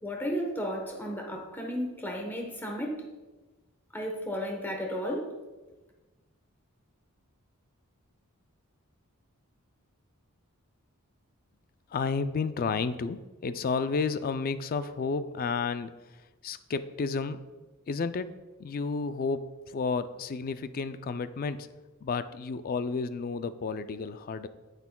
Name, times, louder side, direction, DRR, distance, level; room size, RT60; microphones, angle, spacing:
voice 1, 0.0-3.0 3.9-5.3, equal, 10° left, 1 dB, 1.0 m, -33 dB
voice 2, 11.9-15.9 16.4-17.4 17.9-18.3 18.6-21.7 22.0-24.5, left 4 dB, 40° left, 12 dB, 0.3 m, -31 dB
9.4 x 8.1 x 2.2 m, 1.2 s
head